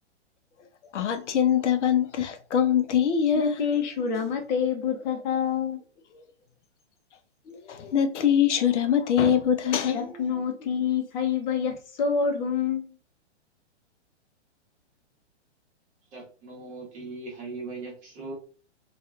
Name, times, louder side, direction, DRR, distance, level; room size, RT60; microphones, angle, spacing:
voice 1, 0.9-3.6 7.5-10.2, left 8 dB, 85° left, 0.6 m, -23 dB
voice 2, 3.3-5.8 9.8-12.9, left 7 dB, 40° left, 0.7 m, -27 dB
voice 3, 16.1-18.3, right 3 dB, 20° right, 0.9 m, -39 dB
2.9 x 2.3 x 2.2 m
hypercardioid pair, 135°, 35 cm